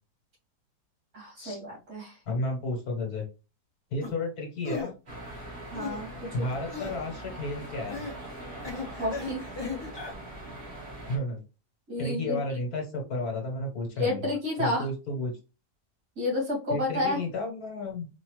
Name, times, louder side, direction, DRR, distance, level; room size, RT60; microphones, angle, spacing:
voice 1, 1.1-2.2 5.7-6.5 9.0-9.4 11.9-12.4 14.0-14.9 16.2-17.2, left 2 dB, 65° right, -3 dB, 2.7 m, -30 dB
voice 2, 2.3-3.2 3.9-4.9 6.3-8.0 11.0-11.4 12.0-14.2 14.6-15.3 16.7-18.1, left 2 dB, 65° left, 2 dB, 1.7 m, -32 dB
sound 1, 4.0-4.1 4.6-4.9 5.7-6.1 6.7-7.0 7.9-8.2 8.6-10.1, left 4 dB, 20° left, 0.8 m, -36 dB
sound 2, 5.1-11.2, right 1 dB, 35° right, 1.9 m, -42 dB
4.9 x 2.7 x 3.1 m, 0.31 s
omnidirectional pair, 1.7 m